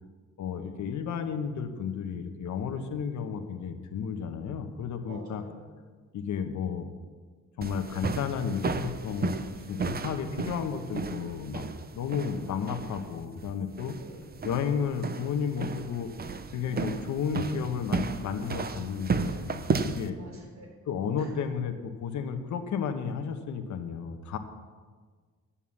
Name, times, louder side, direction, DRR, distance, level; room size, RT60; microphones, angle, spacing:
voice 1, 0.4-5.4 6.1-6.9 7.6-9.4 9.6-11.7 11.9-13.9 14.4-16.1 16.5-20.2 20.9-24.4, left 7 dB, 70° left, 6 dB, 1.2 m, -32 dB
voice 2, 5.1-5.7 13.9-14.4 20.2-20.7 21.2-21.3, right 2 dB, 60° right, 0 dB, 3.9 m, -47 dB
sound 1, 7.6-20.1, right 4 dB, 30° right, 0.7 m, -34 dB
11.5 x 7.1 x 7.2 m, 1.5 s
cardioid pair, 90°, 30 cm